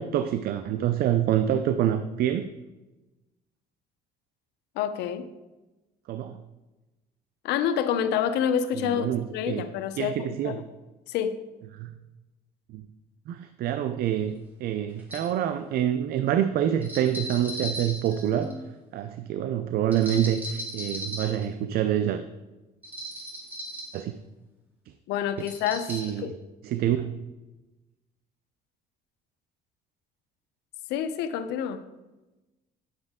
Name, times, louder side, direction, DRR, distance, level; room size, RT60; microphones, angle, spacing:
voice 1, 0.0-2.5 6.1-6.4 8.8-9.6 10.0-10.6 11.8-11.9 12.7-12.8 13.3-14.3 14.6-18.5 18.9-22.2 23.9-24.1 25.4-25.5 25.9-26.3 26.6-27.1, right 10 dB, 65° right, 10 dB, 0.4 m, -26 dB
voice 2, 4.8-5.3 7.4-10.6 11.1-11.4 25.1-26.3 30.9-31.8, left 8 dB, 85° left, 11 dB, 0.6 m, -28 dB
sound 1, 14.1-14.2 15.0-15.3 16.8-18.6 19.9-21.4 22.8-24.0 25.4-26.1, equal, 10° right, 2.2 m, -37 dB
9.7 x 6.2 x 3.6 m, 1.1 s
cardioid pair, 110°, 17 cm